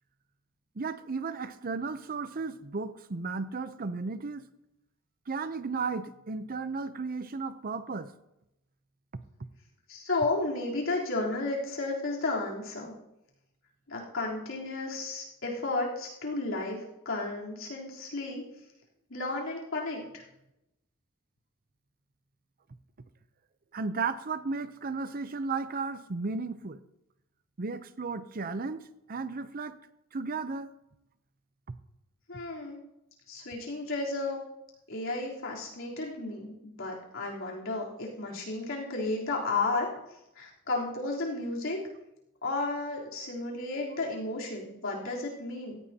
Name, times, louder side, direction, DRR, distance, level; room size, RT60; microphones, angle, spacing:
voice 1, 0.8-4.5 5.3-8.1 9.1-9.2 23.7-26.8 27.6-29.8 30.1-30.7 31.7-31.8, right 4 dB, 45° right, 0.6 m, -34 dB
voice 2, 9.9-12.9 13.9-18.4 19.1-20.2 32.3-32.8 33.3-34.4 34.9-39.9 40.4-41.8 42.4-45.8, left 2 dB, 70° left, 3.6 m, -33 dB
16.5 x 14.5 x 2.8 m
head